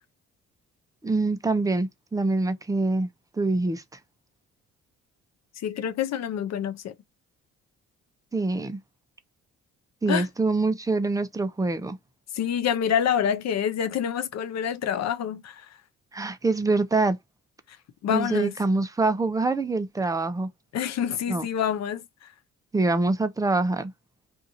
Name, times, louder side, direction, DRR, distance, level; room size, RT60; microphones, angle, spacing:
voice 1, 1.0-3.1 3.3-3.8 8.3-8.8 10.0-12.0 16.1-17.2 18.1-20.5 21.3-21.5 22.7-23.9, right 3 dB, 10° right, 0.5 m, -25 dB
voice 2, 5.6-6.9 10.1-10.3 12.3-15.7 18.0-18.5 20.7-22.0, left 9 dB, 60° left, 0.6 m, -27 dB
2.7 x 2.4 x 2.6 m
cardioid pair, 90°, 30 cm